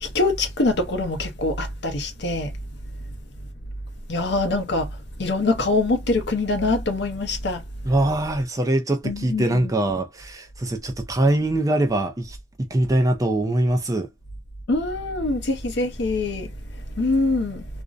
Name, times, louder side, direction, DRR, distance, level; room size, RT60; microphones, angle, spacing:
voice 1, 0.0-2.5 4.1-7.6 9.0-9.7 14.7-16.5 17.0-17.7, left 2 dB, 60° left, 0.6 m, -24 dB
voice 2, 7.8-14.1, right 1 dB, 15° right, 0.4 m, -23 dB
2.5 x 2.0 x 2.4 m
head